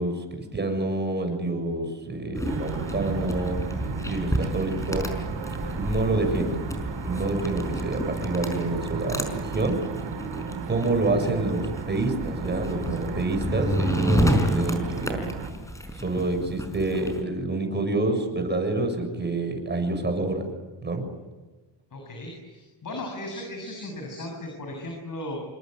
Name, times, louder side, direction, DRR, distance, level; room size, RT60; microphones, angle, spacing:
voice 1, 0.0-3.6 4.1-5.1 5.7-6.6 7.0-9.8 10.7-15.2 15.9-20.5 20.8-21.0, right 2 dB, 25° right, 5 dB, 7.1 m, -27 dB
sound 1, 2.3-17.2, equal, 5° left, 5.2 m, -30 dB
sound 2, 2.5-15.5, right 5 dB, 85° right, 6.0 m, -35 dB
voice 2, 21.9-25.4, left 1 dB, 45° left, 2 dB, 7.6 m, -36 dB
28.5 x 24.5 x 8.1 m, 1.2 s
wide cardioid pair, 145°, 44 cm